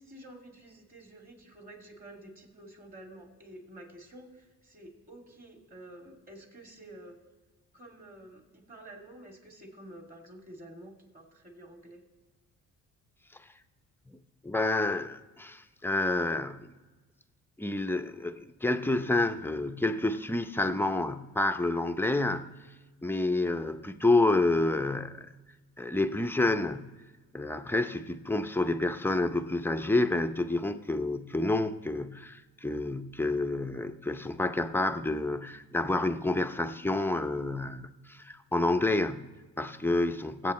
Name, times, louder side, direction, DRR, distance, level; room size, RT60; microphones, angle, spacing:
voice 1, 0.0-7.2 7.7-12.0, right 1 dB, 30° right, 2.6 m, -50 dB
voice 2, 14.4-16.7 17.6-22.6 23.0-25.3 25.8-27.0 27.3-40.5, left 2 dB, 5° left, 0.6 m, -29 dB
21.5 x 8.0 x 3.1 m
cardioid pair, 90°, 30 cm